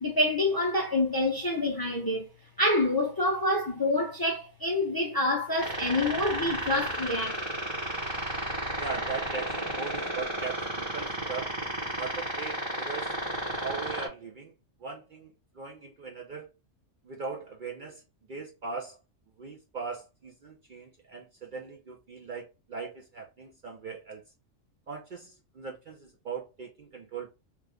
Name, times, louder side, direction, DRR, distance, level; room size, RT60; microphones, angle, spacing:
voice 1, 0.0-2.3 2.6-7.4, left 1 dB, 25° left, 0.5 m, -27 dB
sound 1, 5.6-14.1, right 1 dB, 20° right, 1.1 m, -33 dB
voice 2, 8.8-11.6 12.0-13.2 13.6-14.5 14.8-16.5 17.0-18.0 18.3-19.0 19.4-24.2 24.9-27.3, right 5 dB, 55° right, 0.6 m, -39 dB
2.9 x 2.4 x 3.4 m
omnidirectional pair, 1.3 m